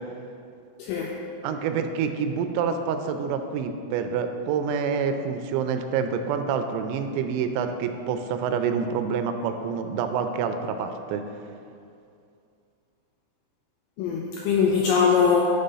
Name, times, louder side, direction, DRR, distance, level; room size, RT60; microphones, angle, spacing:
voice 1, 0.8-1.1 14.0-15.4, left 6 dB, 90° left, -1 dB, 2.6 m, -21 dB
voice 2, 1.4-11.2, right 6 dB, 85° right, 7 dB, 3.2 m, -27 dB
10.5 x 3.7 x 5.4 m, 2.5 s
omnidirectional pair, 5.9 m